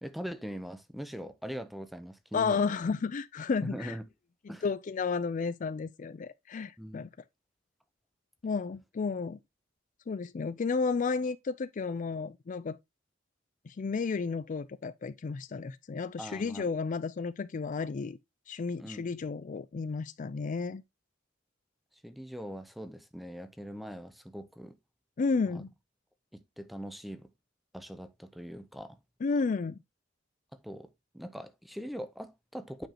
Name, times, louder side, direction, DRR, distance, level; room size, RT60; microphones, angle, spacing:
voice 1, 0.0-2.6 3.6-4.1 4.5-4.6 6.8-7.0 16.2-16.7 18.8-19.1 22.0-24.8 25.5-25.6 26.3-27.3 27.7-29.0 30.6-32.9, equal, ahead, 0.7 m, -41 dB
voice 2, 2.3-3.9 4.6-7.1 8.4-9.4 10.1-12.8 13.7-18.2 18.5-20.8 25.2-25.7 29.2-29.8, left 4 dB, 45° left, 0.4 m, -32 dB
8.9 x 5.2 x 2.9 m
head